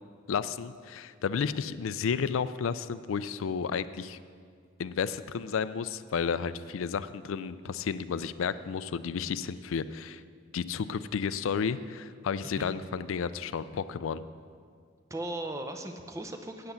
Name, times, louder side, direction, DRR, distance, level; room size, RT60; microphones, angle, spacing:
voice 1, 0.3-4.2 4.8-10.2 10.5-14.2, left 6 dB, 75° left, 15 dB, 0.4 m, -32 dB
voice 2, 12.4-12.8 15.1-16.7, right 1 dB, 15° right, 6 dB, 0.6 m, -37 dB
8.6 x 8.0 x 6.9 m, 2.1 s
head